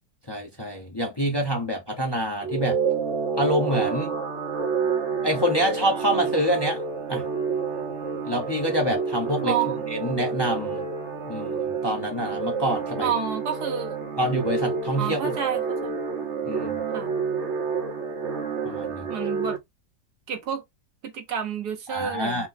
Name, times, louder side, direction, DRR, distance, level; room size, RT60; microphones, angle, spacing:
voice 1, 0.3-2.8 3.4-4.1 5.2-6.8 7.1-7.3 8.2-9.6 9.9-10.9 11.3-13.1 14.2-15.3 16.4-16.8 18.6-19.0 21.9-22.5, equal, 20° left, 0.9 m, -26 dB
sound 1, 2.4-19.6, right 5 dB, 50° right, 1.2 m, -29 dB
voice 2, 9.4-9.8 13.0-14.0 15.0-16.0 16.9-17.1 19.1-19.6 20.3-20.6 21.0-22.5, right 8 dB, 70° right, 1.5 m, -29 dB
4.5 x 2.3 x 3.8 m
omnidirectional pair, 1.8 m